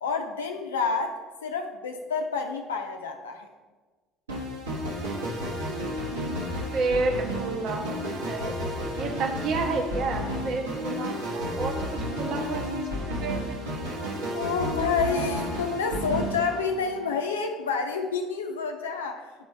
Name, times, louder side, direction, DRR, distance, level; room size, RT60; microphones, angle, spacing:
voice 1, 0.0-1.1 1.4-3.5 14.3-19.5, left 5 dB, 80° left, 4 dB, 0.6 m, -29 dB
sound 1, 4.3-17.2, equal, 80° right, 1.5 m, -32 dB
voice 2, 6.7-8.6 8.9-13.7 14.0-14.1 15.0-15.6, right 3 dB, 50° right, 3 dB, 1.0 m, -31 dB
10.5 x 4.5 x 3.3 m, 1.3 s
figure-of-eight pair, 60°, 0 cm